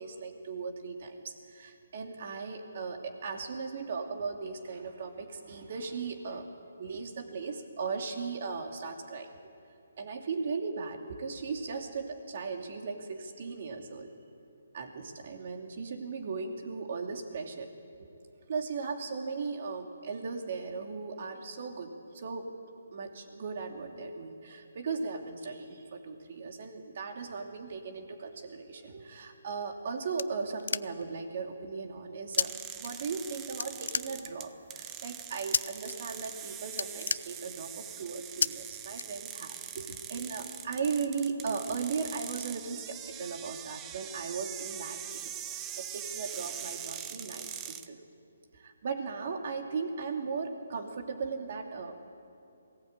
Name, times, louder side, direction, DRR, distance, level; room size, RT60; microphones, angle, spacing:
voice 1, 0.0-6.5 6.8-9.3 10.0-14.1 14.7-17.7 18.0-18.1 18.5-22.6 22.9-48.1 48.5-51.9, right 5 dB, 45° right, 4 dB, 2.7 m, -37 dB
sound 1, 29.5-31.2 32.4-32.5 32.8-33.3 33.6-34.6 35.5-35.9 36.3-36.4 36.7-37.8 38.4-38.5 38.9-39.6, left 5 dB, 65° left, 0.5 m, -32 dB
sound 2, 32.3-47.9, right 10 dB, 15° right, 0.7 m, -42 dB
22.5 x 17.5 x 8.8 m, 2.7 s
hypercardioid pair, 160°, 0 cm